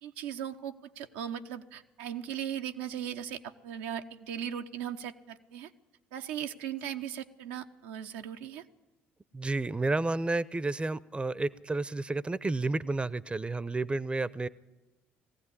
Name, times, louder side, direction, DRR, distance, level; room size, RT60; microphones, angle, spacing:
voice 1, 0.0-5.7 6.1-8.6, right 9 dB, 80° right, 5 dB, 1.0 m, -38 dB
voice 2, 9.3-14.5, right 2 dB, 20° right, 19 dB, 0.7 m, -31 dB
19.5 x 16.0 x 9.9 m, 1.1 s
hypercardioid pair, 55°, 6 cm